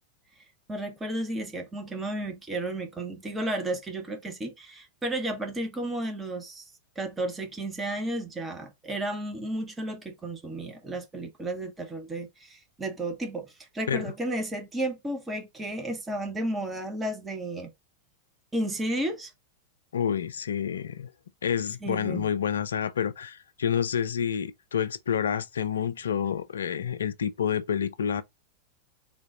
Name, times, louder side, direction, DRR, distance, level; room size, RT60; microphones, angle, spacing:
voice 1, 0.7-6.6 7.0-13.5 13.7-17.7 18.5-19.3 21.8-22.2, right 1 dB, 15° right, 1.1 m, -33 dB
voice 2, 19.9-21.1 21.4-28.2, left 8 dB, 65° left, 0.4 m, -28 dB
3.7 x 2.5 x 3.7 m
figure-of-eight pair, 90°, 0 cm